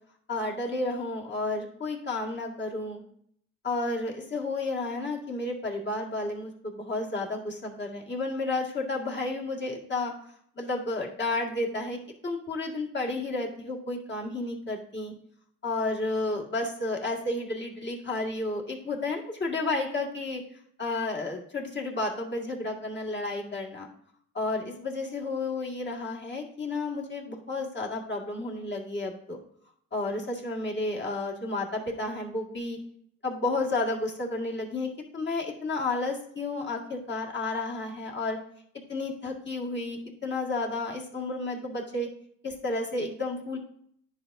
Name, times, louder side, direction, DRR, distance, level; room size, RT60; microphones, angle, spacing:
voice 1, 0.3-3.0 3.6-10.1 10.6-15.1 15.6-20.4 20.8-23.9 24.3-29.4 29.9-32.8 33.2-38.4 38.9-42.1 42.4-43.6, left 2 dB, 35° left, -1 dB, 2.0 m, -31 dB
10.5 x 5.1 x 2.7 m, 0.66 s
supercardioid pair, 75°, 32 cm